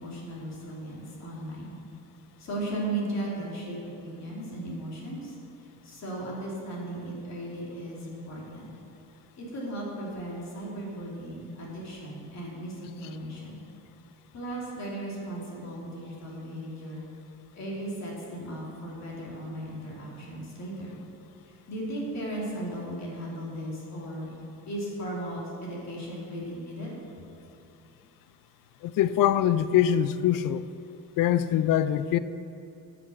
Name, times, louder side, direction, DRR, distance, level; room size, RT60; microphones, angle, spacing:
voice 1, 0.0-1.8 2.4-3.8 4.0-5.3 5.8-8.7 9.4-13.6 14.3-17.1 17.5-21.0 21.7-24.3 24.7-26.9, right 1 dB, 50° left, -4 dB, 2.8 m, -36 dB
voice 2, 28.8-30.7 31.2-32.2, left 10 dB, 65° left, 14 dB, 0.5 m, -23 dB
9.8 x 6.0 x 7.7 m, 2.7 s
cardioid pair, 105°, 36 cm